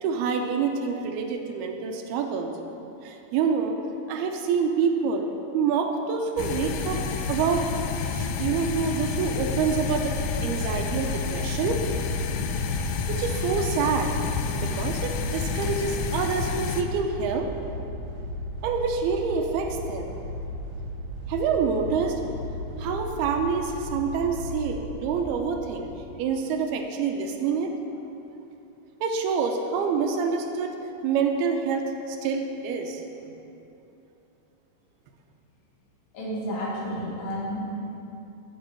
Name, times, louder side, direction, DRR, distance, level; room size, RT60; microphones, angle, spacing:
voice 1, 0.0-2.5 3.0-3.8 4.1-5.3 5.5-7.0 7.3-7.7 8.1-10.2 10.4-11.8 13.1-14.1 14.6-17.5 18.6-20.1 21.3-22.2 22.8-25.9 26.2-27.7 29.0-30.7 31.0-33.0, right 5 dB, 80° right, 4 dB, 2.6 m, -27 dB
sound 1, 6.4-16.8, left 6 dB, 85° left, 2.1 m, -29 dB
sound 2, 9.5-26.1, equal, 55° right, 2.5 m, -36 dB
voice 2, 36.1-37.9, equal, 60° left, -5 dB, 3.5 m, -31 dB
15.5 x 6.9 x 4.4 m, 2.9 s
omnidirectional pair, 4.6 m